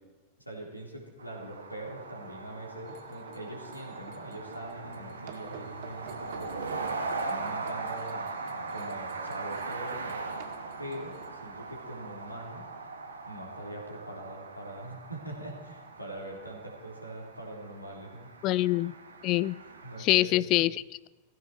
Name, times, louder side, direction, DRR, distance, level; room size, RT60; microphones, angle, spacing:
voice 1, 0.4-6.9 7.2-8.3 8.7-10.1 10.8-12.6 13.2-18.3 19.8-20.6, right 1 dB, 90° left, 0 dB, 3.6 m, -42 dB
sound 1, 1.2-20.0, right 3 dB, 70° right, 1.7 m, -40 dB
sound 2, 2.9-11.3, right 7 dB, 50° right, 1.8 m, -51 dB
voice 2, 18.4-18.9 19.2-19.6 20.0-21.1, left 16 dB, 40° left, 20 dB, 0.4 m, -25 dB
17.0 x 15.0 x 4.6 m, 1.2 s
figure-of-eight pair, 90°, 0 cm